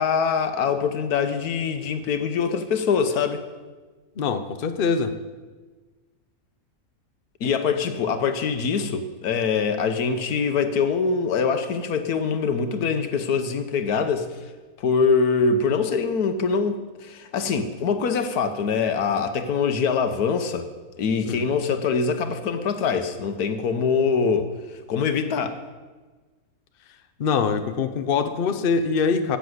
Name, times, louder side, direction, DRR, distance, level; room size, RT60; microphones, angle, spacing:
voice 1, 0.0-3.4 7.4-14.3 14.8-20.7 21.0-25.6, left 5 dB, 85° left, 8 dB, 1.5 m, -24 dB
voice 2, 4.2-5.1 21.3-21.4 27.2-29.4, left 5 dB, 45° left, 9 dB, 0.8 m, -23 dB
13.5 x 7.0 x 7.9 m, 1.3 s
omnidirectional pair, 1.6 m